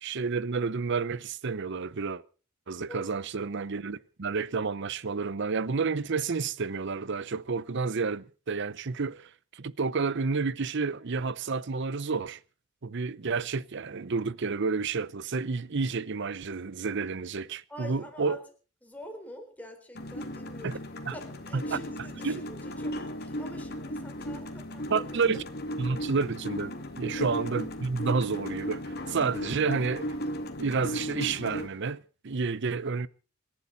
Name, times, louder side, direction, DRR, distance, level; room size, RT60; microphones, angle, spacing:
voice 1, 0.0-2.2 2.7-12.4 12.8-18.3 20.6-20.8 21.1-21.2 21.5-21.8 22.2-22.4 24.9-25.4 25.8-30.1 30.6-33.1, right 4 dB, 60° right, 0.7 m, -30 dB
voice 2, 17.7-18.4 18.8-20.8 21.1-25.3 27.0-27.3, left 1 dB, 10° left, 3.9 m, -46 dB
sound 1, 19.9-31.7, equal, 50° left, 2.2 m, -36 dB
26.5 x 11.5 x 4.0 m
head